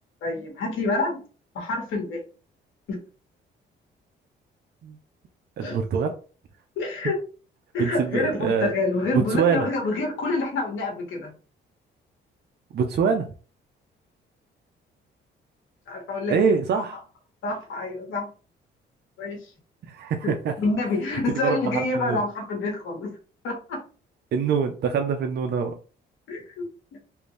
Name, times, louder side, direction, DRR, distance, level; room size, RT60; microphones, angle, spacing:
voice 1, 0.2-1.2 1.5-2.2 2.9-3.0 5.6-5.8 6.8-7.2 7.7-11.3 15.9-16.5 17.4-18.3 19.2-19.5 20.2-20.3 20.6-23.2 23.4-23.8 26.3-26.7 26.9-27.0, left 3 dB, 80° left, 1 dB, 1.5 m, -27 dB
voice 2, 5.6-6.2 7.8-8.7 9.3-9.7 12.7-13.3 16.3-17.0 19.9-20.5 21.4-22.2 24.3-25.8, right 6 dB, 55° right, 4 dB, 0.5 m, -24 dB
3.4 x 2.6 x 3.2 m, 0.37 s
cardioid pair, 90°, 20 cm